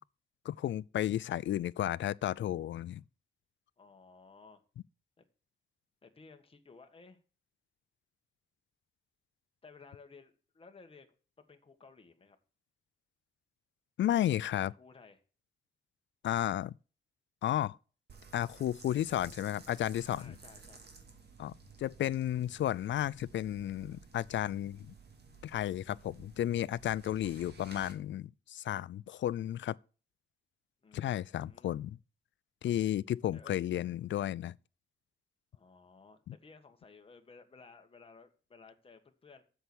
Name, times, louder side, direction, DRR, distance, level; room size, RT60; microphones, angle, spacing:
voice 1, 0.5-3.0 14.0-14.7 16.2-16.7 17.4-17.8 18.3-20.3 21.4-24.9 25.4-29.8 30.9-32.0 32.6-34.5 36.3-36.4, left 12 dB, 85° left, 0.4 m, -33 dB
voice 2, 3.8-4.6 6.0-7.2 9.6-12.4 14.5-15.2 18.9-19.5 20.1-20.9 27.1-27.6 30.8-31.8 33.3-33.6 35.5-39.4, left 4 dB, 30° left, 1.5 m, -57 dB
sound 1, 18.1-27.9, right 5 dB, 60° right, 2.3 m, -55 dB
7.9 x 7.0 x 6.1 m
wide cardioid pair, 145°, 19 cm